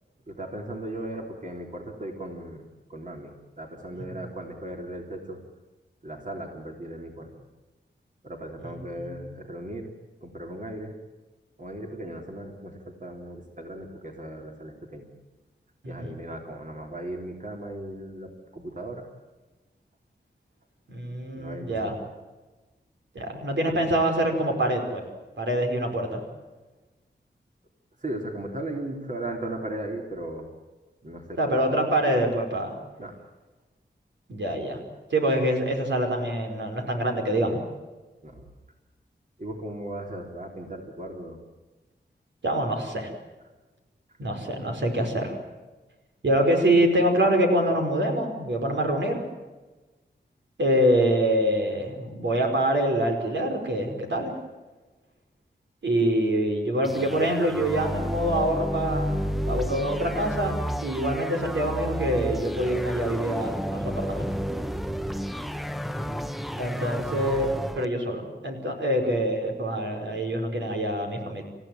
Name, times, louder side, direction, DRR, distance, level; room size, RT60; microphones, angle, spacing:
voice 1, 0.3-5.4 6.0-7.3 8.2-9.9 10.2-10.9 11.6-15.1 15.9-19.1 21.3-22.0 28.0-30.5 31.0-31.6 33.0-33.2 38.2-38.5 39.4-41.4 66.0-66.6, right 1 dB, 45° right, 2 dB, 3.5 m, -37 dB
voice 2, 20.9-21.9 23.2-25.0 25.4-26.2 31.4-32.7 34.3-34.8 35.1-37.6 42.4-43.1 44.2-45.3 46.2-49.3 50.6-54.3 55.8-64.3 66.6-71.4, right 1 dB, 80° right, 2 dB, 5.2 m, -25 dB
sound 1, 56.8-67.9, equal, ahead, 0.7 m, -31 dB
29.0 x 15.0 x 9.3 m, 1.2 s
wide cardioid pair, 95°, 18 cm